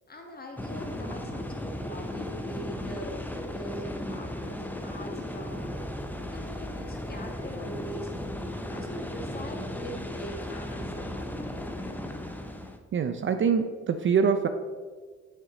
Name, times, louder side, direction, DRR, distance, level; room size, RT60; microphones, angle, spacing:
voice 1, 0.1-5.8 6.3-8.1 8.7-11.7, equal, 30° left, 2 dB, 1.5 m, -42 dB
sound 1, 0.6-12.8, left 1 dB, 5° left, 0.6 m, -36 dB
voice 2, 12.9-14.5, right 6 dB, 40° right, 8 dB, 0.5 m, -24 dB
6.8 x 5.7 x 3.9 m, 1.5 s
cardioid pair, 90°, 30 cm